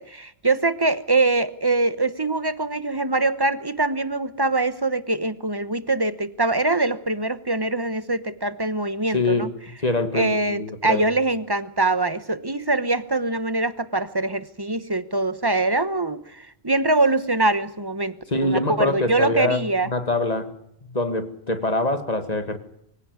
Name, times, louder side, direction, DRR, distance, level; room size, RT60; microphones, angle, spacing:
voice 1, 0.0-9.5 10.1-18.1 18.4-19.9, right 2 dB, 25° right, 14 dB, 1.0 m, -23 dB
voice 2, 9.1-9.5 9.8-11.1 18.3-20.5 20.8-22.6, left 2 dB, 40° left, 9 dB, 2.0 m, -24 dB
24.0 x 16.5 x 9.4 m, 0.75 s
omnidirectional pair, 1.1 m